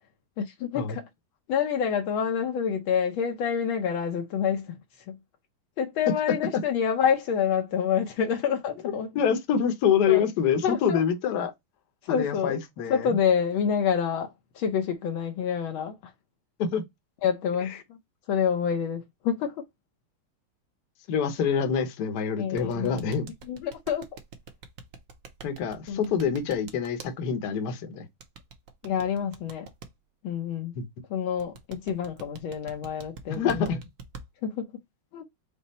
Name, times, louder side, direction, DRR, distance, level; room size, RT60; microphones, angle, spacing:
voice 1, 0.4-1.1 1.5-4.8 5.1-5.2 5.8-9.1 10.0-10.3 10.6-11.0 12.0-12.6 12.9-16.1 17.2-18.0 18.3-19.6 22.4-23.0 23.5-24.1 25.9-26.1 28.8-29.7 30.2-30.7 31.1-33.8 34.4-34.7 35.1-35.2, left 7 dB, 75° left, 1.5 m, -27 dB
voice 2, 9.1-11.5 12.1-13.2 16.6-16.8 21.1-23.3 25.4-28.1 30.8-30.9 33.3-33.8, left 7 dB, 60° left, 1.3 m, -26 dB
sound 1, 22.6-27.1 28.2-29.9 31.4-34.2, right 5 dB, 70° right, 0.8 m, -44 dB
5.4 x 2.0 x 4.0 m
omnidirectional pair, 2.3 m